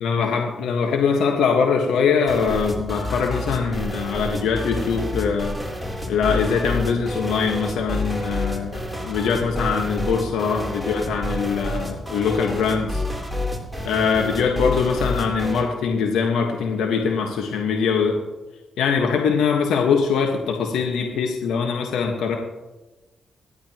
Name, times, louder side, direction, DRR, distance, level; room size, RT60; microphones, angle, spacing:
voice 1, 0.0-5.6 6.1-13.0 13.8-18.2 18.8-22.3, left 6 dB, 80° left, 1 dB, 1.5 m, -22 dB
sound 1, 2.3-15.7, left 1 dB, ahead, 3.6 m, -29 dB
26.5 x 11.5 x 3.0 m, 1.1 s
supercardioid pair, 45°, 0 cm